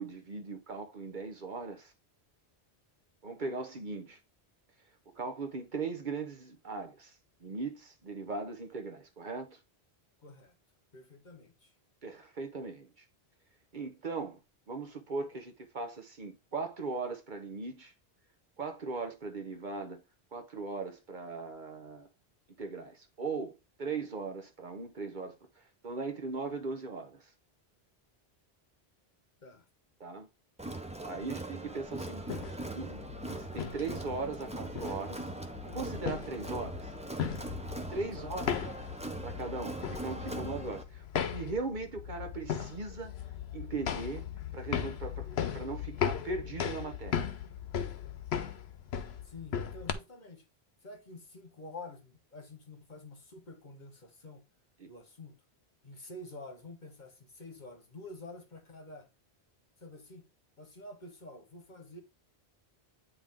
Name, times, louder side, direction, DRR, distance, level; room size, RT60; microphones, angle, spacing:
voice 1, 0.0-1.9 3.2-4.2 5.1-7.1 7.4-9.6 12.0-12.9 13.7-14.4 14.7-17.9 18.6-20.0 20.3-22.1 22.6-25.4 25.8-27.2 30.0-30.3 31.0-35.3 35.6-36.9 37.9-38.4 39.2-43.1 43.5-44.3 44.5-47.2 54.8-54.9, right 4 dB, 50° right, 1.0 m, -39 dB
voice 2, 10.2-10.5 10.9-11.7 29.4-29.7 38.0-38.9 49.2-50.4 50.8-54.4 54.9-55.4 55.8-59.1 59.8-60.3 60.6-62.0, left 2 dB, 45° left, 1.2 m, -48 dB
Crowd, 30.6-40.8, right 2 dB, 10° right, 0.6 m, -41 dB
sound 1, 32.2-49.9, left 8 dB, 75° left, 1.0 m, -38 dB
9.0 x 3.3 x 3.6 m
omnidirectional pair, 1.1 m